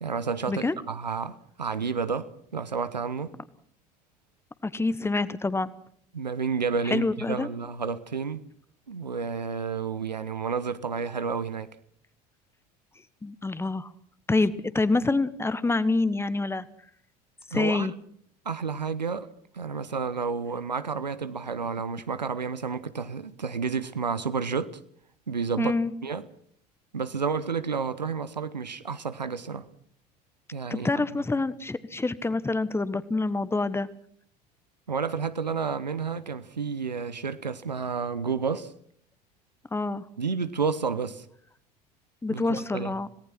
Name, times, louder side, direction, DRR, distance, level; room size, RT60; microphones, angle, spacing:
voice 1, 0.0-3.3 6.1-8.4 8.9-11.7 17.5-17.9 18.4-19.3 19.5-24.8 25.3-25.7 26.0-26.2 26.9-29.7 30.5-30.9 34.9-38.7 40.2-41.3 42.3-43.0, right 5 dB, 85° right, 1.0 m, -30 dB
voice 2, 4.6-5.7 6.9-7.5 13.2-13.9 14.3-16.7 17.5-17.9 25.6-25.9 30.7-33.9 39.7-40.0 42.2-43.1, left 3 dB, 10° left, 1.3 m, -26 dB
26.5 x 18.5 x 6.0 m
figure-of-eight pair, 70°, 21 cm